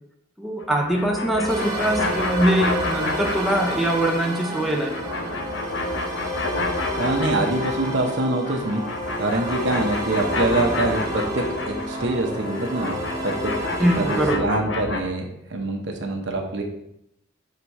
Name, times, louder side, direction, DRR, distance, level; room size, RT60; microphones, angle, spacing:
voice 1, 0.4-5.1 13.8-14.5, right 1 dB, ahead, 0 dB, 0.5 m, -23 dB
sound 1, 0.6-4.2 4.5-8.2 8.4-15.0, left 2 dB, 65° left, 0.8 m, -29 dB
sound 2, 1.5-14.4, right 1 dB, 20° right, 1.4 m, -31 dB
voice 2, 7.0-8.8 9.2-12.9 13.2-13.5 14.0-16.6, right 2 dB, 60° right, 3 dB, 0.9 m, -25 dB
5.5 x 3.7 x 4.6 m, 0.80 s
head